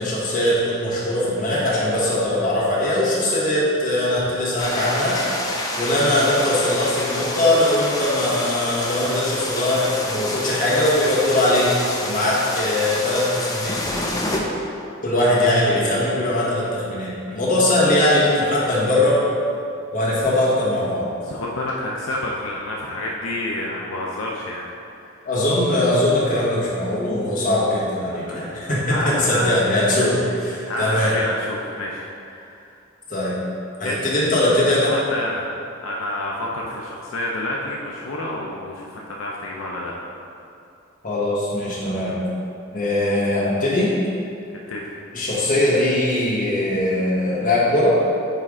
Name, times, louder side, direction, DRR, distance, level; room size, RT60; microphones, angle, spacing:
voice 1, 0.0-5.2 5.7-11.7 12.0-13.8 15.0-19.2 19.9-21.0 25.2-30.1 30.4-31.1 33.1-33.3 33.8-35.0 41.0-42.2 42.7-43.9 45.1-48.0, left 1 dB, 40° left, -6 dB, 1.5 m, -20 dB
sound 1, 4.6-14.4, left 2 dB, 20° left, 0.6 m, -28 dB
voice 2, 21.2-24.7 25.0-25.3 28.3-29.7 30.2-30.4 30.6-32.7 33.8-34.0 34.9-35.4 35.8-39.9 44.7-44.8, left 1 dB, 80° left, -3 dB, 0.6 m, -29 dB
8.9 x 3.3 x 3.7 m, 2.6 s
head